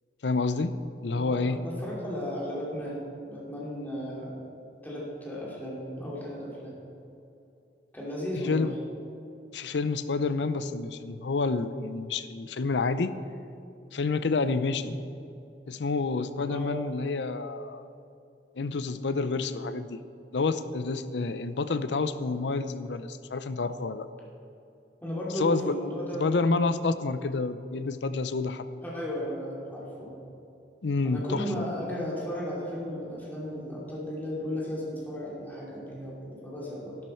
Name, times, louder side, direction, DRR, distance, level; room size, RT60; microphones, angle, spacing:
voice 1, 0.2-0.8 1.0-1.6 8.5-8.7 9.5-13.1 13.9-14.9 15.7-17.8 18.6-20.0 20.3-24.1 25.4-25.7 26.1-28.7 30.8-31.6, left 3 dB, 75° left, 12 dB, 0.6 m, -28 dB
voice 2, 1.1-4.4 4.8-6.7 7.9-8.8 14.9-15.0 16.5-16.7 25.0-26.3 28.8-30.2 31.0-37.0, equal, 10° left, -6 dB, 2.8 m, -35 dB
12.5 x 12.0 x 4.4 m, 2.7 s
head